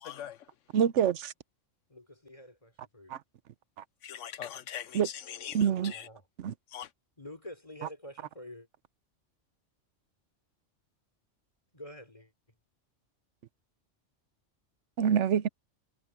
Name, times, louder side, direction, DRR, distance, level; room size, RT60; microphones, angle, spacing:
voice 1, 0.0-0.5 4.0-6.1 6.7-6.9, left 10 dB, 85° left, 1.2 m, -42 dB
voice 2, 0.7-1.3 3.1-3.2 4.9-5.1 5.5-5.9 6.4-6.5 15.0-15.5, right 8 dB, 75° right, 1.0 m, -25 dB
voice 3, 1.9-3.2 5.6-6.2 7.2-8.7 11.7-12.6, left 1 dB, 25° left, 3.4 m, -48 dB
omnidirectional pair, 1.3 m